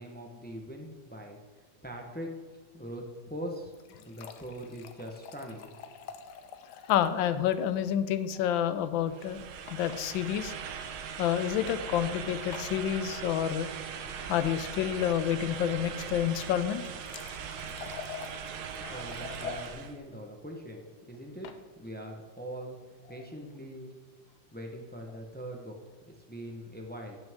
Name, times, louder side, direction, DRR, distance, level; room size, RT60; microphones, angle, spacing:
voice 1, 0.0-1.4 1.8-2.3 2.7-3.7 4.0-5.7 18.9-22.8 23.1-23.9 24.5-25.8 26.3-27.2, equal, 10° left, 2 dB, 0.4 m, -42 dB
sound 1, 3.5-7.2 7.5-7.6 7.9-8.0 9.7-10.0 11.0-11.2 12.5-12.8 16.6-19.7 21.1-21.6, left 7 dB, 70° left, 1.2 m, -45 dB
voice 2, 6.9-9.4 9.7-10.5 11.2-13.7 14.3-16.8 18.8-18.9, left 10 dB, 85° left, 12 dB, 1.4 m, -29 dB
sound 2, 9.1-20.0, right 7 dB, 75° right, 1.5 m, -40 dB
14.5 x 6.2 x 3.6 m, 1.5 s
omnidirectional pair, 2.1 m